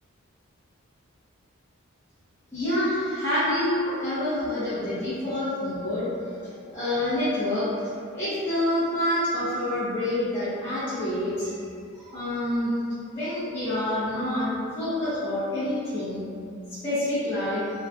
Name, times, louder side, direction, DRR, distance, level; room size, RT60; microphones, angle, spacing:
voice 1, 2.5-6.1 6.4-7.7 8.1-11.6 11.9-12.7 13.1-14.5 14.7-16.2 16.7-17.6, left 1 dB, 10° left, -16 dB, 0.6 m, -27 dB
2.4 x 2.2 x 2.5 m, 2.4 s
head